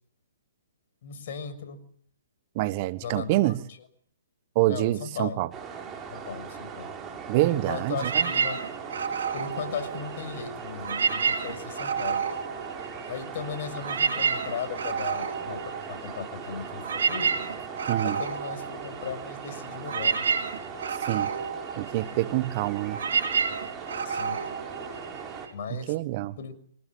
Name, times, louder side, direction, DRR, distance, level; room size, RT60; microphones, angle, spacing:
voice 1, 1.0-1.8 3.0-3.5 4.7-5.4 6.1-6.9 7.5-8.6 9.3-12.2 13.1-17.3 18.0-20.3 24.0-24.4 25.5-25.9 26.4-26.6, left 6 dB, 50° left, 6.4 m, -37 dB
voice 2, 2.5-3.6 4.5-5.5 7.3-8.3 17.9-18.2 21.1-21.3 21.8-23.0 25.7-26.4, right 17 dB, 35° right, 1.3 m, -26 dB
sound 1, 5.5-25.5, right 6 dB, 15° right, 6.4 m, -40 dB
sound 2, 7.9-10.4 10.7-13.3 13.6-25.5, right 6 dB, 65° right, 5.4 m, -30 dB
25.5 x 18.5 x 9.5 m
hypercardioid pair, 135°, 0 cm